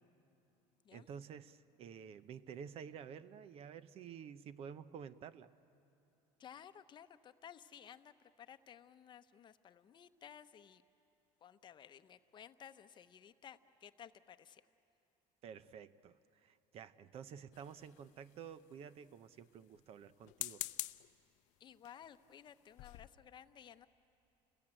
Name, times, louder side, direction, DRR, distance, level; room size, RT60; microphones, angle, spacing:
voice 1, 0.9-5.5 15.4-20.6, right 7 dB, 50° right, 14 dB, 0.7 m, -51 dB
voice 2, 6.4-10.8 11.4-14.6 21.6-23.9, left 9 dB, 35° left, 10 dB, 0.8 m, -56 dB
sound 1, 17.5-18.3 20.2-21.1 21.8-22.1 22.5-22.6 22.8-23.1, left 19 dB, 70° left, 0.6 m, -44 dB
30.0 x 21.0 x 8.9 m, 2.9 s
cardioid pair, 125°, 13 cm